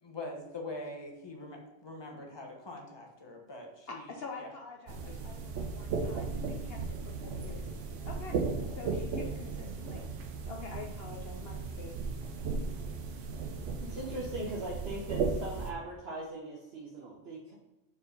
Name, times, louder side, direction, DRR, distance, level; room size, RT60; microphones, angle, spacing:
voice 1, 0.0-4.1 4.4-4.5 5.1-5.2, left 2 dB, 20° left, 1 dB, 1.1 m, -43 dB
voice 2, 3.9-7.7 8.0-8.4 8.7-10.0 10.5-11.9, left 4 dB, 60° left, 1 dB, 0.8 m, -46 dB
sound 1, 4.9-15.7, right 4 dB, 80° right, 1.1 m, -36 dB
voice 3, 13.8-17.5, right 1 dB, 55° right, -4 dB, 1.2 m, -40 dB
4.8 x 4.7 x 5.2 m, 1.0 s
omnidirectional pair, 1.3 m